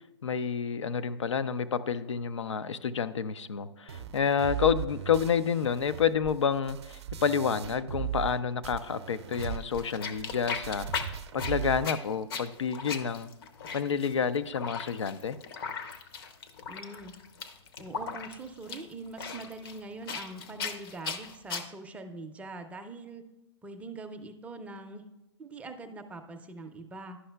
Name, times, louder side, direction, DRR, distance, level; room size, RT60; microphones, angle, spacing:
voice 1, 0.0-10.9 11.3-13.3 13.7-15.4, left 7 dB, 85° left, 13 dB, 0.4 m, -29 dB
sound 1, 3.9-8.4 8.6-11.9, right 10 dB, 65° right, 0.5 m, -38 dB
sound 2, 9.3-21.6, left 5 dB, 55° left, 0.8 m, -38 dB
voice 2, 16.7-17.2 17.8-23.2 23.6-25.0 25.4-27.2, right 3 dB, 10° right, 5 dB, 0.5 m, -43 dB
11.0 x 5.5 x 2.2 m, 0.96 s
hypercardioid pair, 125°, 15 cm